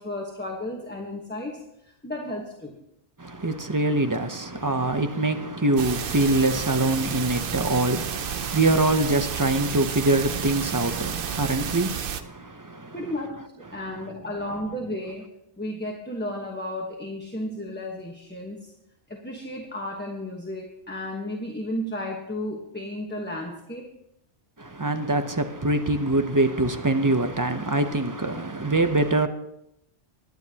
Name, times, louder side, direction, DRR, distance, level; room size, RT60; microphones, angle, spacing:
voice 1, 0.0-2.8 12.9-15.3 15.6-18.7 19.1-23.9, left 1 dB, 10° left, 1.2 m, -33 dB
voice 2, 3.2-13.0 13.7-14.1 24.6-29.3, right 2 dB, 20° right, 0.6 m, -24 dB
sound 1, 5.8-12.2, right 8 dB, 60° right, 0.8 m, -31 dB
21.5 x 9.4 x 2.9 m
omnidirectional pair, 1.1 m